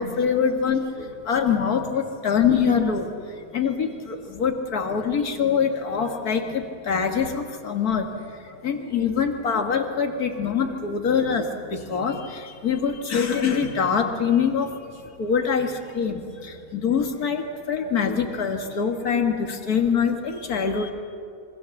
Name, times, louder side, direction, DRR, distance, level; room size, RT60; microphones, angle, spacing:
voice 1, 0.0-8.1 8.4-20.9, left 6 dB, 80° left, 4 dB, 2.4 m, -24 dB
27.0 x 24.0 x 7.2 m, 2.4 s
omnidirectional pair, 1.6 m